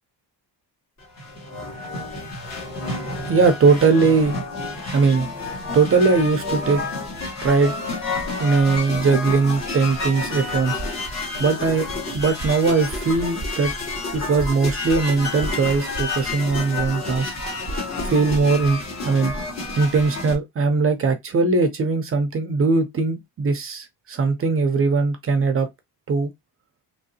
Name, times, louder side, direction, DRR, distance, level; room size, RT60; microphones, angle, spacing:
sound 1, 1.0-20.4, left 3 dB, 40° left, 1.2 m, -29 dB
voice 1, 3.3-4.4 4.9-5.3 5.7-6.8 7.4-7.7 8.4-10.8 11.4-11.9 12.1-13.7 14.1-17.3 18.0-19.3 19.8-25.7 26.1-26.3, right 4 dB, 35° right, 0.5 m, -20 dB
3.0 x 2.6 x 2.7 m
cardioid pair, 165°, 41 cm